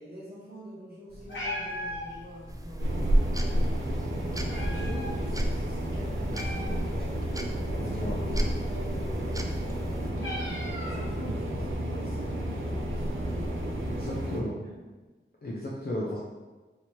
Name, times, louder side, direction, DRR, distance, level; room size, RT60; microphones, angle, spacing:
voice 1, 0.0-4.1 4.3-7.2 7.6-14.0 14.3-14.8, equal, 50° right, -6 dB, 1.4 m, -44 dB
Meow, 1.1-11.5, left 1 dB, 70° left, 1.3 m, -41 dB
sound 1, 2.5-10.1, right 1 dB, 15° right, 0.3 m, -39 dB
sound 2, 2.8-14.4, equal, 80° right, 0.6 m, -30 dB
voice 2, 7.9-8.6 13.9-14.6 15.4-16.2, left 1 dB, 50° left, -5 dB, 0.6 m, -34 dB
2.9 x 2.8 x 4.5 m, 1.2 s
wide cardioid pair, 55°, 20 cm